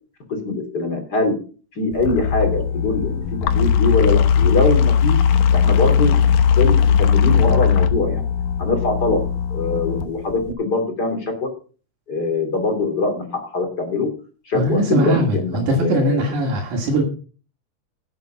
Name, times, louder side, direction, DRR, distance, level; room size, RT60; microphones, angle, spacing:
voice 1, 0.4-1.3 1.7-3.3 3.5-5.2 5.5-6.2 6.6-8.2 8.6-9.2 9.5-11.3 12.1-14.1 14.5-16.3, left 2 dB, 35° left, 4 dB, 3.2 m, -22 dB
sound 1, 1.9-10.5, left 7 dB, 80° left, 2.4 m, -18 dB
voice 2, 14.5-17.0, right 1 dB, 90° right, 0 dB, 3.7 m, -20 dB
11.5 x 8.1 x 5.7 m, 0.38 s
omnidirectional pair, 3.4 m